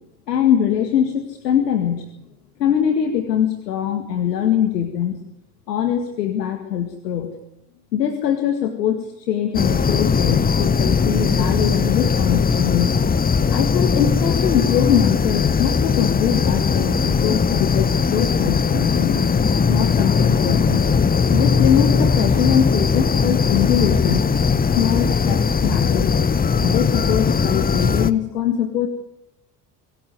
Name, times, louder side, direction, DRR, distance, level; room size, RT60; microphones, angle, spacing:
voice 1, 0.3-2.1 2.6-5.2 5.7-7.3 7.9-12.9 13.5-19.2 19.7-20.9 21.3-24.3 24.8-26.1 26.6-28.9, left 9 dB, 75° left, 7 dB, 2.0 m, -22 dB
sound 1, 9.5-28.1, left 5 dB, 20° left, 1.1 m, -19 dB
24.5 x 15.0 x 9.3 m, 0.82 s
figure-of-eight pair, 65°, 49 cm